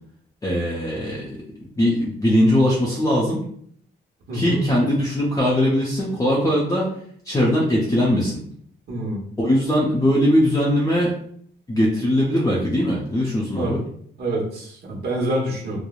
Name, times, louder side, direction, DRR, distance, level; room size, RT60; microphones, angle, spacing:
voice 1, 0.4-1.3 1.8-3.5 4.3-6.9 7.3-8.4 9.4-11.1 11.7-13.8, equal, 15° left, -5 dB, 0.6 m, -20 dB
voice 2, 4.3-4.7 8.9-9.2 13.5-13.8 14.2-15.8, right 1 dB, 55° right, -1 dB, 1.1 m, -26 dB
3.0 x 2.0 x 2.3 m, 0.63 s
cardioid pair, 90°, 20 cm